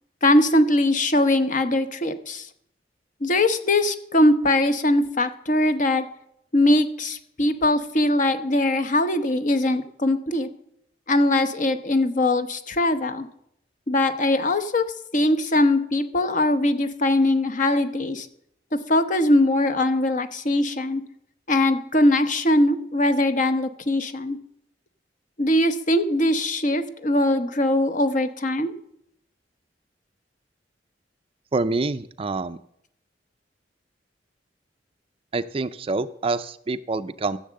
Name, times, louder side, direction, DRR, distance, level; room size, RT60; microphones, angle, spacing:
voice 1, 0.2-2.5 3.2-6.0 6.5-10.5 11.1-13.3 13.9-14.9 15.1-18.3 18.9-21.0 21.5-24.4 25.4-28.7, left 1 dB, 45° left, 10 dB, 0.9 m, -21 dB
voice 2, 31.5-32.6 35.3-37.4, right 3 dB, 30° right, 13 dB, 0.4 m, -26 dB
14.0 x 7.3 x 7.6 m, 0.73 s
head